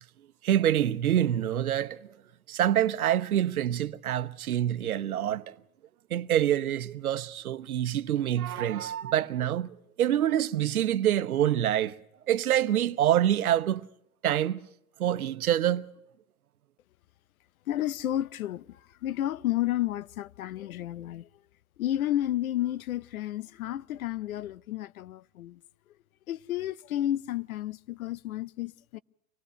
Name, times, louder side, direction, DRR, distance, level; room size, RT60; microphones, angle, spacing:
voice 1, 0.4-2.0 2.5-5.5 6.1-11.9 12.3-13.9 14.2-14.6 15.0-15.9, right 11 dB, 85° right, 1.0 m, -26 dB
voice 2, 17.7-21.3 21.8-25.6 26.3-29.0, left 13 dB, 80° left, 0.8 m, -31 dB
25.5 x 17.0 x 6.5 m
hypercardioid pair, 110°, 42 cm